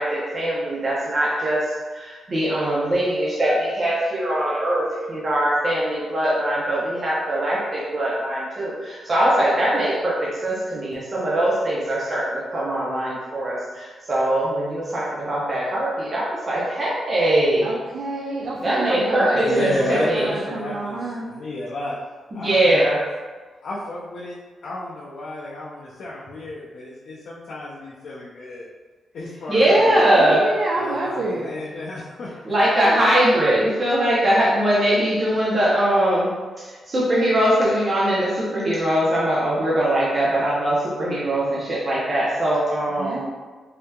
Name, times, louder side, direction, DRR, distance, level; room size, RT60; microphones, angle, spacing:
voice 1, 0.0-17.7 18.6-20.3 22.3-23.1 29.5-30.5 32.4-43.2, right 1 dB, 35° right, -7 dB, 0.7 m, -21 dB
voice 2, 17.6-21.3 29.7-31.5 32.8-33.1 43.0-43.3, right 2 dB, 85° right, -5 dB, 0.4 m, -28 dB
voice 3, 19.4-22.0 22.3-22.9 23.6-24.4 24.6-28.7 29.1-30.1 30.8-32.5, left 1 dB, 70° left, -6 dB, 0.4 m, -32 dB
3.4 x 2.8 x 2.2 m, 1.4 s
wide cardioid pair, 140°, 0 cm